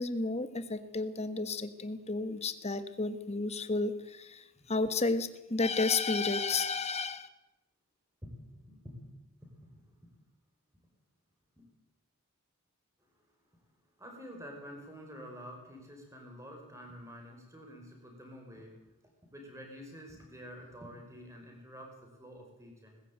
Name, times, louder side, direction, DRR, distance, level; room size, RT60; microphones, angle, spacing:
voice 1, 0.0-7.3, left 3 dB, 30° left, 11 dB, 1.3 m, -32 dB
voice 2, 8.2-9.0 9.4-9.9 11.6-11.7 14.0-18.7 19.3-23.0, equal, 15° right, 2 dB, 5.3 m, -48 dB
19.5 x 15.5 x 9.1 m, 0.96 s
head